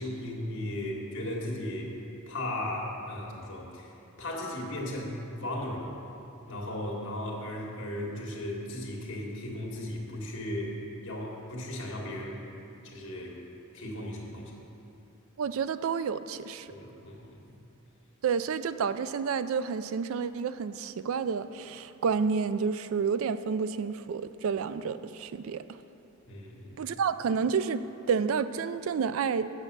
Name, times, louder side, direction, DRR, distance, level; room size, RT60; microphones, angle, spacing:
voice 1, 0.0-1.9 2.3-6.0 6.5-10.8 11.0-12.4 12.8-13.4 13.7-14.5 16.7-17.5 26.2-26.9, left 1 dB, 60° left, -1 dB, 1.7 m, -36 dB
voice 2, 15.4-16.7 18.2-25.6 26.8-29.5, right 6 dB, 70° right, 13 dB, 0.3 m, -30 dB
8.1 x 7.2 x 6.7 m, 2.8 s
head